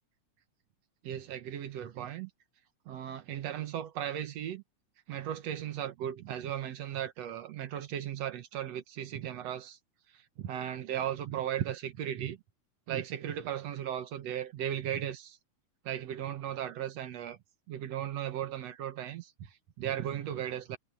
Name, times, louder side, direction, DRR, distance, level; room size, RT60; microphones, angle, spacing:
voice 1, 1.0-2.3 2.9-4.6 5.1-9.8 10.1-12.4 12.9-15.4 15.8-17.4 17.7-20.8, right 10 dB, 65° right, 2.2 m, -36 dB
omnidirectional pair, 3.5 m